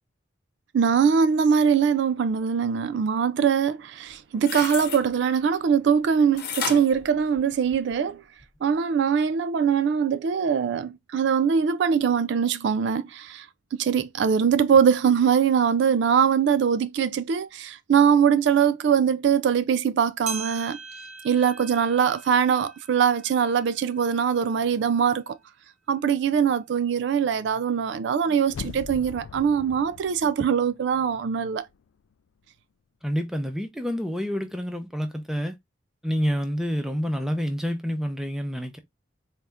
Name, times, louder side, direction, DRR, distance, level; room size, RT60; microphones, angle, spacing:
voice 1, 0.7-8.2 8.6-13.5 13.7-20.8 21.2-25.4 25.9-31.7, right 7 dB, 60° right, 0.3 m, -22 dB
sound 1, 4.1-5.0 6.4-7.9 8.4-8.5, left 6 dB, 50° left, 0.9 m, -33 dB
sound 2, 20.3-24.9 25.4-25.5 26.3-26.4 27.3-27.4, right 5 dB, 35° right, 0.8 m, -41 dB
sound 3, 28.5-31.4 31.7-31.8, left 6 dB, 80° left, 0.3 m, -41 dB
voice 2, 33.0-35.6 36.0-38.8, equal, ahead, 0.6 m, -28 dB
4.1 x 2.4 x 3.3 m
head